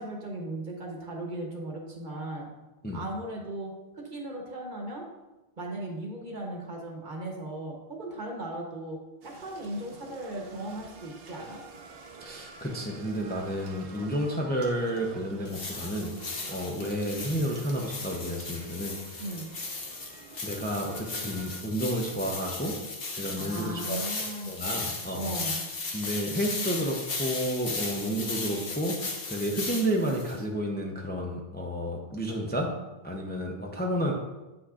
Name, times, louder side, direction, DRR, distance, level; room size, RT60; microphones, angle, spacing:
voice 1, 0.0-2.5 2.9-5.1 5.6-11.6 19.2-19.5 23.4-24.5 25.2-25.6, right 1 dB, 50° right, 0 dB, 1.2 m, -37 dB
sound 1, 9.2-21.6, right 3 dB, 70° right, 1.0 m, -48 dB
voice 2, 12.2-16.1 16.5-19.2 20.4-22.8 23.2-25.3 25.9-32.7 33.0-34.1, equal, 10° left, 0 dB, 0.5 m, -31 dB
sound 2, 15.5-30.4, left 3 dB, 65° left, 1.2 m, -36 dB
8.1 x 5.9 x 2.5 m, 1.1 s
omnidirectional pair, 1.1 m